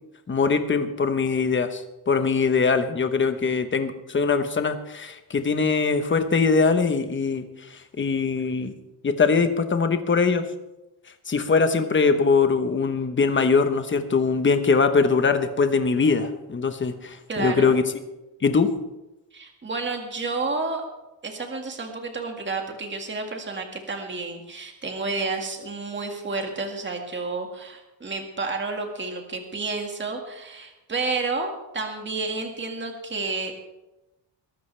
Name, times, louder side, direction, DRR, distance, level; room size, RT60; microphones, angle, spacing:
voice 1, 0.3-7.5 7.7-8.7 9.0-10.4 11.3-17.8 18.4-18.7, left 5 dB, 25° left, 8 dB, 1.1 m, -22 dB
voice 2, 17.3-17.7 19.3-20.8 21.2-33.6, right 3 dB, 25° right, 3 dB, 2.0 m, -30 dB
22.0 x 13.0 x 3.4 m, 0.98 s
wide cardioid pair, 165°, 44 cm